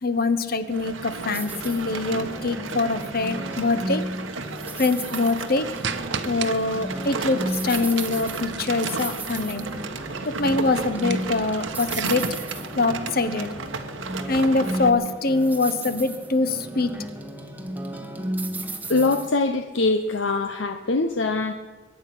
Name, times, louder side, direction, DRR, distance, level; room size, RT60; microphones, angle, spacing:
voice 1, 0.0-4.0 4.8-5.7 6.2-9.7 10.2-12.3 12.8-13.5 14.3-16.9, left 3 dB, 50° left, 11 dB, 1.1 m, -24 dB
sound 1, 0.7-14.9, right 4 dB, 90° right, 1.4 m, -33 dB
sound 2, 1.3-19.3, right 1 dB, 10° right, 1.1 m, -34 dB
sound 3, 5.8-6.5 7.9-9.8 10.9-12.3, right 7 dB, 65° right, 0.9 m, -34 dB
voice 2, 18.9-21.5, left 3 dB, 70° left, 8 dB, 0.8 m, -23 dB
22.5 x 10.0 x 6.1 m, 1.4 s
head